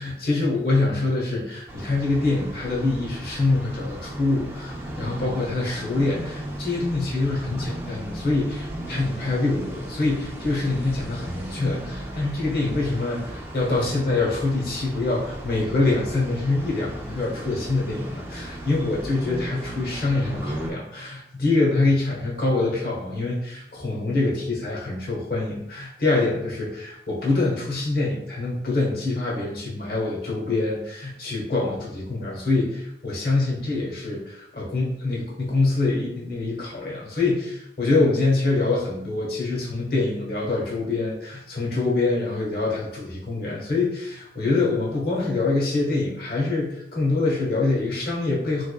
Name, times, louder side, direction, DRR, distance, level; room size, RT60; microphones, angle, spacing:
voice 1, 0.0-48.7, left 3 dB, 55° left, -4 dB, 1.1 m, -25 dB
sound 1, 1.7-20.7, right 1 dB, 15° right, 0.5 m, -36 dB
3.5 x 3.3 x 2.2 m, 0.80 s
head